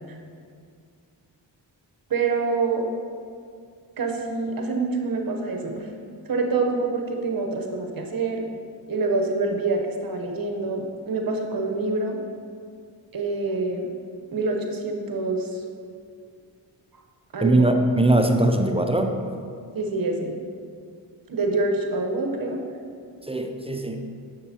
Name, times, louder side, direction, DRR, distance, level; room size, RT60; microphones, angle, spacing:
voice 1, 2.1-2.9 4.0-5.9 6.3-8.4 8.9-12.2 13.1-13.9 14.3-15.6 17.3-17.7 19.7-20.3 21.3-22.6, right 3 dB, 50° right, 2 dB, 1.0 m, -26 dB
voice 2, 17.4-19.2 23.2-24.1, right 1 dB, 15° right, 4 dB, 0.5 m, -21 dB
6.7 x 6.5 x 2.9 m, 2.2 s
cardioid pair, 50°, 45 cm